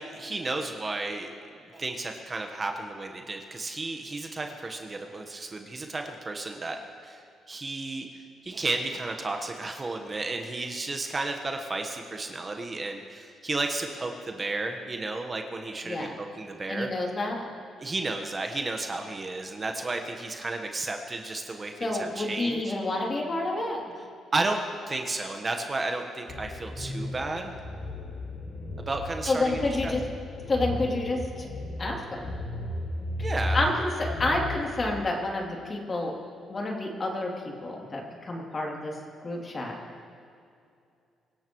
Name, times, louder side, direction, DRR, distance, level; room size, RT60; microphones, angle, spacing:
voice 1, 0.0-1.3 1.7-6.8 7.0-8.1 8.4-16.9 17.8-22.7 24.3-24.6 24.9-27.6 28.8-29.9 33.2-33.6, right 2 dB, 30° right, 4 dB, 1.2 m, -33 dB
voice 2, 16.7-17.4 21.8-23.8 29.3-30.0 30.5-31.5 31.8-32.4 33.5-36.1 36.5-37.3 37.6-38.9 39.2-39.8, left 2 dB, 35° left, -1 dB, 3.0 m, -29 dB
sound 1, 26.3-34.9, left 1 dB, 60° left, 2.6 m, -35 dB
25.0 x 16.0 x 3.1 m, 2.5 s
cardioid pair, 90°, 0 cm